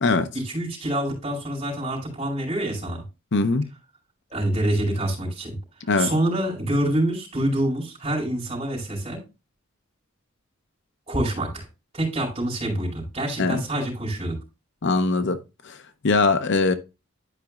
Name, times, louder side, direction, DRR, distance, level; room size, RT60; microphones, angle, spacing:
voice 1, 0.4-3.0 4.3-5.6 6.0-9.2 11.1-11.7 11.9-14.4, right 1 dB, 30° right, 4.5 m, -26 dB
voice 2, 3.3-3.7 5.9-6.1 13.4-13.6 14.8-15.4 15.6-16.7, left 3 dB, 60° left, 0.7 m, -21 dB
12.0 x 5.2 x 2.4 m
head